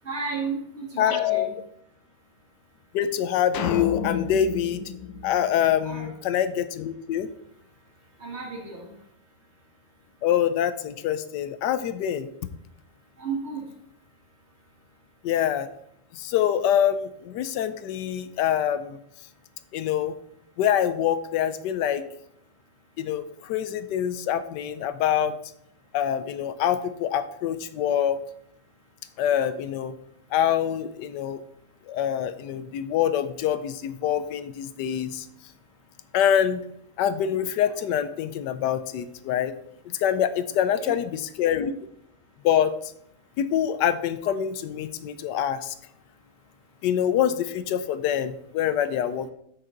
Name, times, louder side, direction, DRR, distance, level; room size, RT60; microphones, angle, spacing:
voice 1, 0.0-1.5 5.8-6.1 8.2-8.9 13.2-13.6 40.8-40.9, right 4 dB, 40° right, -1 dB, 2.0 m, -33 dB
voice 2, 1.0-1.5 2.9-4.8 5.2-7.3 10.2-12.3 15.2-15.7 16.1-19.0 19.7-20.2 20.6-22.0 23.0-25.3 25.9-28.2 29.2-29.9 30.3-31.4 31.9-35.3 36.1-36.6 37.0-39.5 39.8-41.7 42.4-42.9 43.4-45.7 46.8-49.3, left 9 dB, 90° left, 12 dB, 1.2 m, -25 dB
sound 1, 3.5-6.1, left 6 dB, 70° left, 1.2 m, -31 dB
7.7 x 6.7 x 3.8 m, 0.71 s
omnidirectional pair, 1.8 m